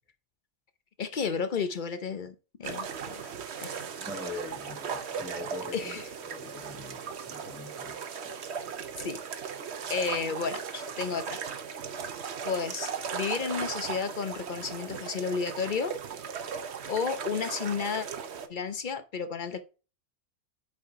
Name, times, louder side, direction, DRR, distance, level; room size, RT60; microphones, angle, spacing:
voice 1, 1.0-3.3 3.6-3.8 5.7-6.1 9.0-9.2 9.9-11.4 12.4-16.0 16.8-18.1 18.5-19.6, left 5 dB, 45° left, 0.7 m, -32 dB
sound 1, 2.6-18.5, right 6 dB, 55° right, 1.0 m, -37 dB
voice 2, 3.8-8.0, left 1 dB, ahead, 1.8 m, -42 dB
8.5 x 4.8 x 3.6 m
omnidirectional pair, 1.5 m